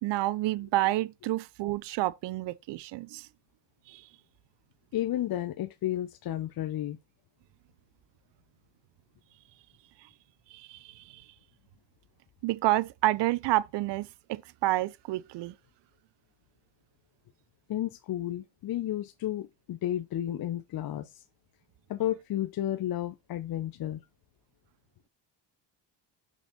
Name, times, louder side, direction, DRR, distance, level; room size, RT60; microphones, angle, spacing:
voice 1, 0.0-3.3 3.9-4.0 10.5-11.2 12.4-15.5, right 16 dB, 65° right, 0.7 m, -29 dB
voice 2, 4.9-7.0 17.7-21.2 21.9-24.0, left 12 dB, 50° left, 0.8 m, -32 dB
6.1 x 6.1 x 4.1 m
supercardioid pair, 75°, 45 cm